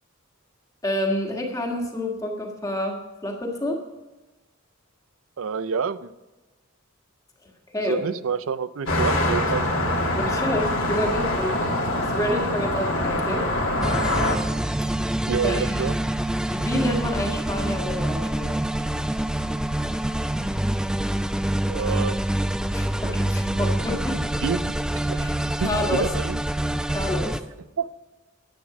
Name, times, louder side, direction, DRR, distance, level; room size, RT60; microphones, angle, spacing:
voice 1, 0.8-3.8 7.7-8.0 10.1-13.4 15.4-15.9 16.5-18.5 21.8-21.9 22.7-24.2 25.1-25.3 25.6-26.1 26.9-27.4, left 1 dB, 15° left, 1 dB, 1.6 m, -28 dB
voice 2, 5.4-6.1 7.9-9.7 15.3-15.9 21.7-22.2 24.4-24.7 25.1-25.2 25.6-26.4 27.8-27.9, right 6 dB, 75° right, 15 dB, 0.5 m, -27 dB
sound 1, 8.9-14.4, left 1 dB, 80° left, 2.4 m, -24 dB
sound 2, 13.8-27.4, right 1 dB, 5° right, 0.3 m, -26 dB
10.5 x 8.4 x 6.0 m, 1.1 s
head